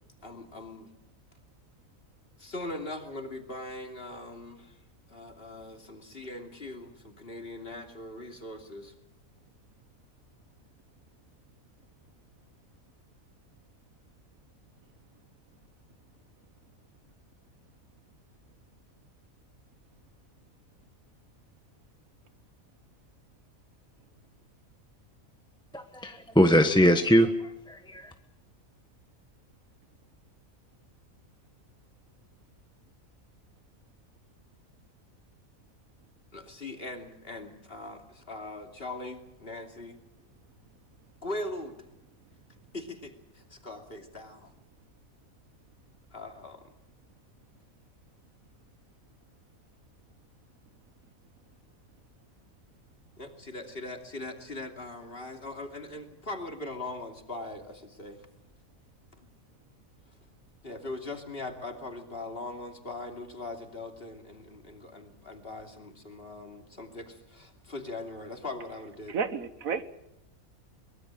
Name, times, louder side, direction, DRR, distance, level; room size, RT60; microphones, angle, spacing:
voice 1, 0.2-0.9 2.4-4.8 5.1-8.9 36.3-40.0 41.2-41.8 42.7-44.5 46.1-46.6 53.2-58.2 59.2-59.3 60.6-69.2, left 2 dB, 45° left, 3.1 m, -40 dB
voice 2, 25.7-28.1, equal, 5° left, 1.1 m, -22 dB
voice 3, 69.1-69.8, right 5 dB, 80° right, 1.6 m, -31 dB
23.5 x 21.0 x 7.5 m
omnidirectional pair, 1.4 m